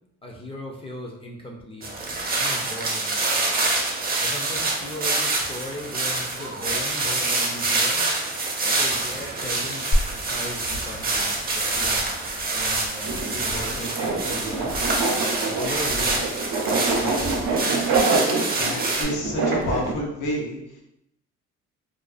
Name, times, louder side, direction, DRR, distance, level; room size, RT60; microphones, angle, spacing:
voice 1, 0.2-1.9 2.3-3.5 4.2-8.1 8.6-12.0 12.5-17.7, left 1 dB, 20° left, -1 dB, 0.4 m, -37 dB
sound 1, 1.8-19.0, right 2 dB, 30° right, 0.5 m, -26 dB
Glass, 9.9-17.9, equal, 55° left, 0.9 m, -33 dB
sound 2, 13.0-19.9, right 3 dB, 85° right, 0.6 m, -26 dB
voice 2, 18.5-20.8, left 1 dB, 85° left, -1 dB, 0.7 m, -30 dB
2.4 x 2.3 x 2.3 m, 0.81 s
cardioid pair, 90°, 30 cm